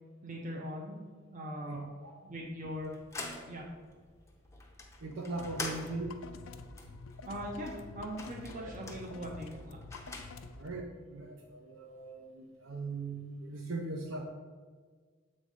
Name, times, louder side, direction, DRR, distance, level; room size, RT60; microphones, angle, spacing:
voice 1, 0.2-1.0 1.3-1.8 2.2-2.9 3.5-3.7 7.2-9.8, equal, 40° right, -1 dB, 0.7 m, -40 dB
voice 2, 1.6-2.1 5.0-6.2 8.6-8.7 10.6-14.3, right 3 dB, 75° right, 2 dB, 0.6 m, -40 dB
sound 1, 2.7-10.7, left 3 dB, 15° left, 0.6 m, -46 dB
sound 2, 5.3-10.8, left 3 dB, 85° left, 0.5 m, -48 dB
7.4 x 3.3 x 5.5 m, 1.5 s
head